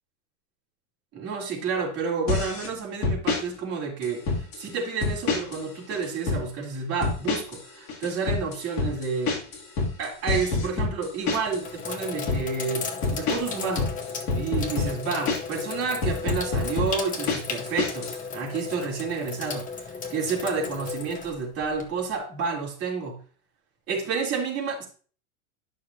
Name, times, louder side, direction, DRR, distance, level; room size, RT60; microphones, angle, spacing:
voice 1, 1.1-9.4 10.0-13.9 14.3-23.2 23.9-24.9, right 5 dB, 35° right, -3 dB, 3.5 m, -30 dB
sound 1, 2.3-2.7 3.0-3.4 4.0-4.6 5.0-5.6 5.9-6.4 7.0-7.6 7.9-11.6 12.0-12.4 13.0-15.6 16.0-18.2, left 4 dB, 40° left, 2.8 m, -27 dB
Sink (filling or washing), 10.1-10.6 11.2-22.1, left 5 dB, 20° left, 0.9 m, -35 dB
11.5 x 6.3 x 2.8 m, 0.41 s
supercardioid pair, 145°, 41 cm